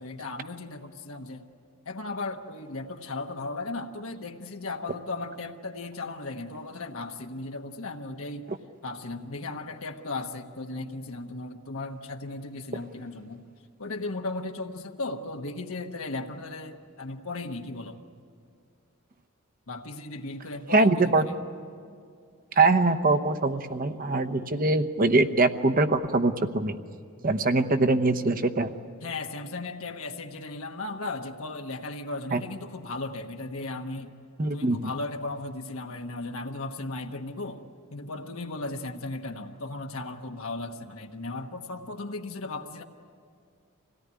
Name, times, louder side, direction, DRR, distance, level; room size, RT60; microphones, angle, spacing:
voice 1, 0.0-1.5 1.8-8.5 8.8-13.5 13.8-18.0 19.7-21.4 29.0-34.2 34.5-37.6 37.9-42.8, left 2 dB, 75° left, 3 dB, 1.2 m, -36 dB
voice 2, 20.7-21.2 22.5-26.7 27.2-28.7 32.3-32.4 34.4-34.8, right 2 dB, 40° right, 8 dB, 0.9 m, -23 dB
25.5 x 17.5 x 9.6 m, 2.3 s
head